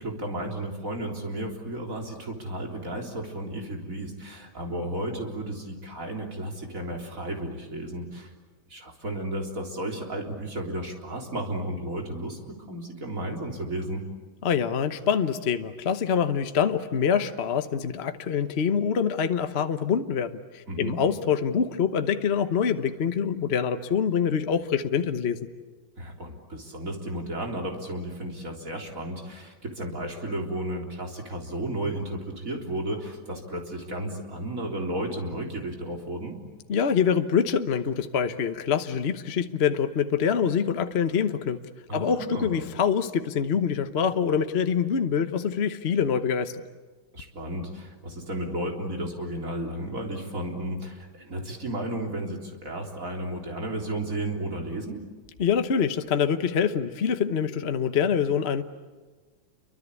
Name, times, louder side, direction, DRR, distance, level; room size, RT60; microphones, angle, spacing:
voice 1, 0.0-8.3 8.7-14.0 20.7-21.0 26.0-36.4 41.9-42.6 47.1-55.0, right 1 dB, 40° right, 1 dB, 4.0 m, -33 dB
voice 2, 14.4-25.4 36.7-41.6 41.9-46.5 55.4-58.6, left 7 dB, 40° left, 8 dB, 1.0 m, -25 dB
29.0 x 24.5 x 8.4 m, 1.3 s
omnidirectional pair, 2.2 m